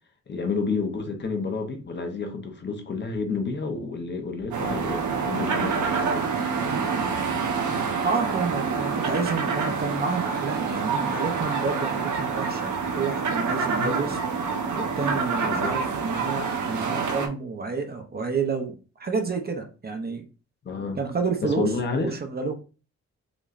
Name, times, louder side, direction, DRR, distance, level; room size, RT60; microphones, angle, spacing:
voice 1, 0.3-6.3 13.8-14.0 15.4-15.7 20.6-21.0 21.4-22.2, left 4 dB, 35° left, 0.6 m, -30 dB
sound 1, 4.5-17.3, right 5 dB, 80° right, 0.9 m, -27 dB
voice 2, 8.0-14.2 14.7-20.2 21.0-21.7 22.0-22.5, right 4 dB, 35° right, 0.6 m, -29 dB
5.1 x 3.0 x 2.4 m
wide cardioid pair, 175°, 29 cm